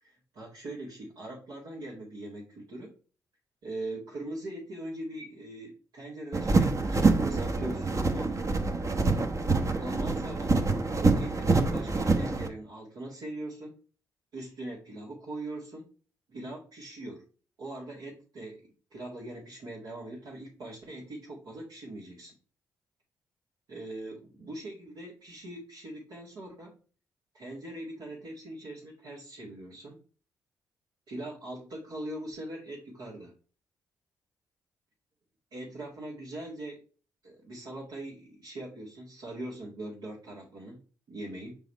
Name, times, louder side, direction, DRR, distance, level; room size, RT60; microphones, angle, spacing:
voice 1, 0.0-2.9 3.6-8.5 9.8-10.5 11.0-13.8 14.3-15.9 16.3-17.2 17.6-18.6 18.9-22.3 23.7-26.7 27.3-30.0 31.1-33.3 35.5-36.8 37.2-40.8 41.1-41.6, right 1 dB, 70° right, -4 dB, 2.0 m, -41 dB
sound 1, 6.3-12.5, right 3 dB, 40° right, 1.1 m, -26 dB
5.5 x 4.1 x 4.2 m, 0.37 s
hypercardioid pair, 45°, 8 cm